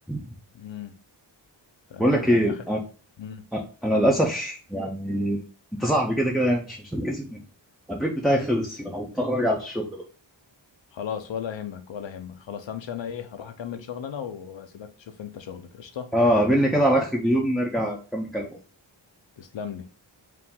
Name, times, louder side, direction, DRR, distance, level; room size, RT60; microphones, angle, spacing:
voice 1, 0.5-1.0 1.9-2.6 3.2-3.5 10.9-16.1 19.4-19.9, left 8 dB, 75° left, 0.7 m, -36 dB
voice 2, 2.0-2.8 3.5-5.4 5.8-7.4 7.9-10.0 16.1-18.6, equal, ahead, 0.5 m, -24 dB
4.7 x 2.5 x 3.6 m
wide cardioid pair, 95°, 46 cm